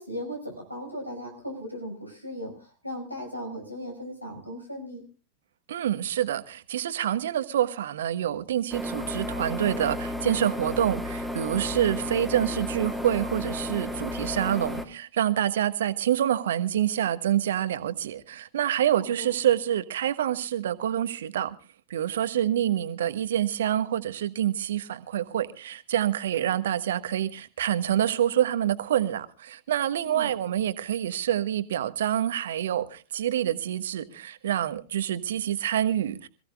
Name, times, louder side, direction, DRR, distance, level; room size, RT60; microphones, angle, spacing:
voice 1, 0.0-5.0 19.2-19.3 30.0-30.3, equal, 90° left, 6.0 m, -37 dB
voice 2, 5.7-21.6 21.9-36.3, right 11 dB, 60° right, 1.2 m, -27 dB
sound 1, 8.7-14.9, left 1 dB, ahead, 2.2 m, -33 dB
27.0 x 16.0 x 2.4 m
figure-of-eight pair, 90°, 0 cm